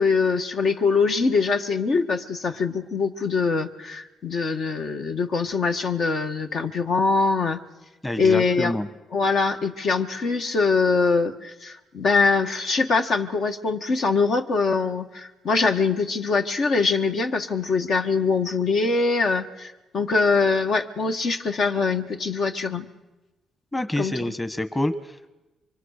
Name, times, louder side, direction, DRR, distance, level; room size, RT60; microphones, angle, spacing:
voice 1, 0.0-7.6 8.2-8.7 9.1-22.9 24.0-24.1, left 4 dB, 60° left, 5 dB, 1.7 m, -23 dB
voice 2, 8.0-8.9 23.7-25.3, left 1 dB, 15° left, 9 dB, 1.5 m, -27 dB
25.0 x 23.5 x 6.7 m, 1.1 s
cardioid pair, 90°, 0 cm